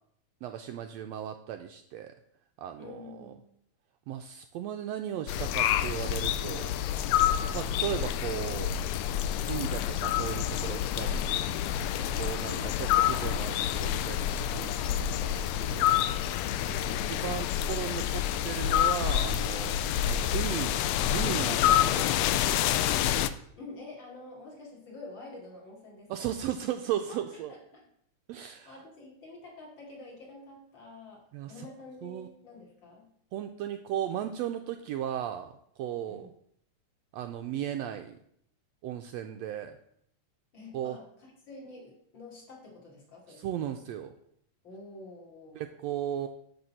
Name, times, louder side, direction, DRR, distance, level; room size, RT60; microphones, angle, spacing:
voice 1, 0.4-2.1 2.6-3.3 4.1-6.7 7.5-8.8 9.4-11.4 12.2-16.0 17.0-20.8 21.1-22.7 26.1-27.5 28.3-28.7 31.3-31.7 32.0-32.3 33.3-36.3 37.1-38.2 38.8-39.8 40.7-41.0 43.3-44.1 45.5-46.3, right 10 dB, 90° right, 6 dB, 1.5 m, -36 dB
voice 2, 2.8-3.4 12.0-12.8 16.5-17.3 23.6-26.4 27.1-27.9 28.3-33.1 36.1-36.3 40.5-43.7 44.6-45.6, left 2 dB, 40° left, -3 dB, 3.1 m, -48 dB
sound 1, 5.3-23.3, left 11 dB, 80° left, 1.6 m, -28 dB
9.8 x 4.1 x 7.5 m, 0.69 s
omnidirectional pair, 3.5 m